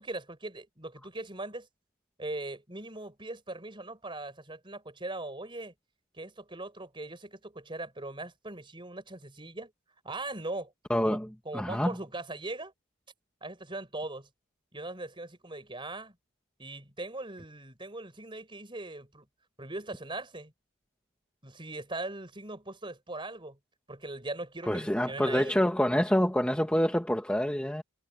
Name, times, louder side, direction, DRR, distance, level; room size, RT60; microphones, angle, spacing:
voice 1, 0.0-1.7 2.2-5.7 6.1-9.7 10.0-10.7 11.0-11.2 11.4-12.7 13.4-14.3 14.7-16.1 16.6-19.3 19.6-20.5 21.4-23.6 23.9-25.6, right 2 dB, 20° right, 5.0 m, -40 dB
voice 2, 10.9-11.3 11.5-11.9 24.7-27.8, equal, 5° left, 1.2 m, -26 dB
head